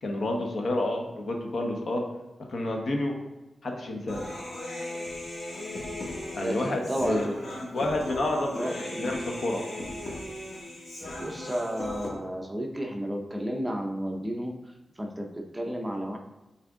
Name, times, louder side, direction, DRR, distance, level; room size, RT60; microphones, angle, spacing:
voice 1, 0.0-2.0 2.5-3.1 3.6-4.2 6.3-7.3 7.7-9.6, left 1 dB, 60° left, 2 dB, 1.0 m, -29 dB
Human voice, 4.1-12.1, left 1 dB, 80° left, 1.8 m, -37 dB
voice 2, 6.4-7.7 8.5-9.1 11.2-14.5 15.0-16.2, equal, 10° right, 2 dB, 0.6 m, -32 dB
6.3 x 4.2 x 3.6 m, 1.0 s
wide cardioid pair, 145°, 0 cm